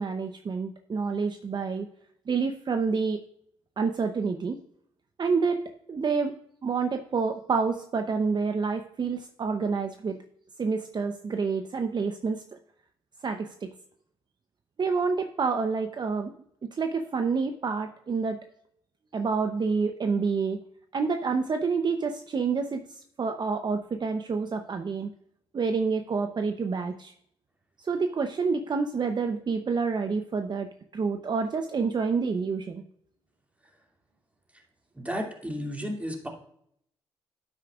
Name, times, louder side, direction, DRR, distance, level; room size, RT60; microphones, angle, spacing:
voice 1, 0.0-1.9 2.3-3.2 3.8-4.6 5.2-5.6 5.9-6.3 6.6-10.2 10.6-12.6 13.2-13.7 14.8-16.3 16.6-18.4 19.1-20.6 20.9-25.1 25.5-27.1 27.8-32.8, right 5 dB, 45° right, 6 dB, 0.7 m, -28 dB
voice 2, 34.9-36.3, equal, 15° right, 1 dB, 2.5 m, -33 dB
9.9 x 8.5 x 2.4 m, 0.70 s
supercardioid pair, 60°, 11 cm